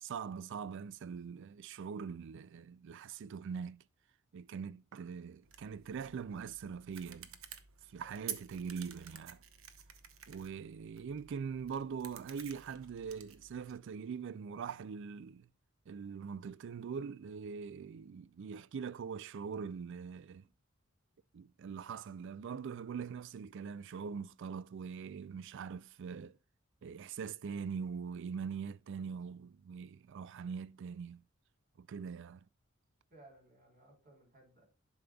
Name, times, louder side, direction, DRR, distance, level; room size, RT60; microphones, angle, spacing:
voice 1, 0.0-3.8 4.3-7.3 7.9-9.4 10.3-15.5 15.9-20.4 21.3-26.4 26.8-31.2 31.8-32.4, right 6 dB, 60° right, 0.4 m, -42 dB
sound 1, 5.4-13.8, right 9 dB, 85° right, 0.8 m, -51 dB
voice 2, 8.0-8.3 33.1-34.6, right 2 dB, 45° right, 3.7 m, -61 dB
11.0 x 5.3 x 2.3 m
head